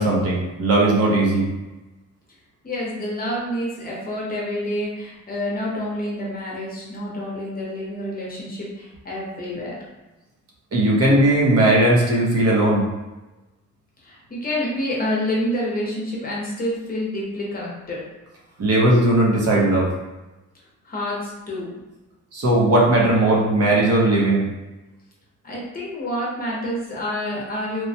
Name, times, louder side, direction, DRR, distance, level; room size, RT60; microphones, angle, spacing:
voice 1, 0.0-1.5 10.7-12.8 18.6-19.9 22.3-24.5, right 1 dB, 55° right, -3 dB, 0.7 m, -18 dB
voice 2, 2.6-9.8 14.0-18.1 20.8-21.8 25.4-27.9, left 1 dB, 30° left, -4 dB, 0.7 m, -28 dB
3.1 x 2.1 x 2.7 m, 1.1 s
wide cardioid pair, 165°, 29 cm